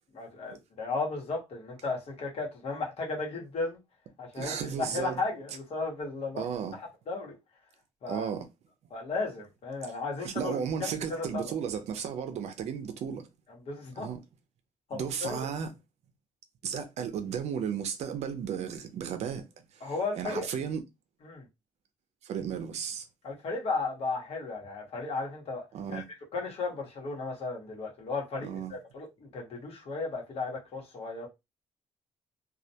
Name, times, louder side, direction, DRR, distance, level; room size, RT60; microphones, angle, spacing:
voice 1, 0.1-3.8 4.2-6.5 6.7-7.4 8.0-8.3 8.9-11.5 13.7-14.1 14.9-15.5 19.8-20.5 21.2-21.4 23.2-26.0 26.3-31.3, left 3 dB, 60° left, 1.1 m, -35 dB
voice 2, 4.4-5.2 6.4-6.8 8.1-8.5 10.2-13.2 14.0-14.2 14.9-15.7 16.6-19.4 19.7-20.8 22.2-23.1 25.7-26.0 28.4-28.7, right 7 dB, 65° right, 0.5 m, -34 dB
2.3 x 2.1 x 2.7 m
cardioid pair, 125°, 12 cm